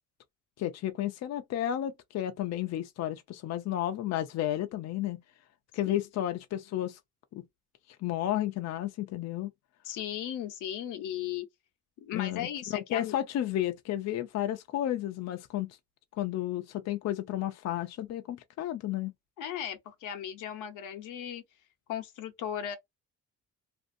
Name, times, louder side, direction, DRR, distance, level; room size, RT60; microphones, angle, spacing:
voice 1, 0.6-5.2 5.7-7.0 7.3-7.4 8.0-9.5 12.1-15.8 16.2-19.1, left 12 dB, 60° left, 0.5 m, -32 dB
voice 2, 9.8-11.5 12.0-13.2 19.4-21.4 21.9-22.8, left 10 dB, 90° left, 0.8 m, -36 dB
2.6 x 2.4 x 2.5 m
cardioid pair, 90°, 30 cm